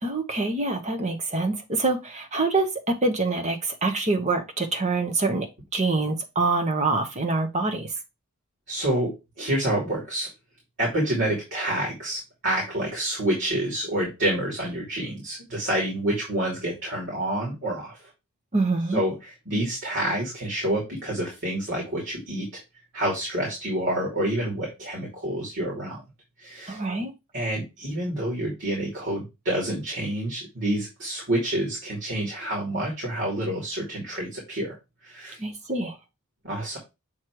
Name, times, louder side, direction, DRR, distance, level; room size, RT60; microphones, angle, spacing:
voice 1, 0.0-5.5 5.7-7.9 18.5-19.0 26.7-27.1 35.4-36.0, right 3 dB, 30° right, 1.2 m, -25 dB
voice 2, 8.7-10.3 10.8-18.1 18.9-22.6 22.9-26.0 26.4-26.8 27.3-34.8 35.0-35.4 36.4-36.8, right 1 dB, 55° right, 2.9 m, -28 dB
7.4 x 3.2 x 4.7 m
head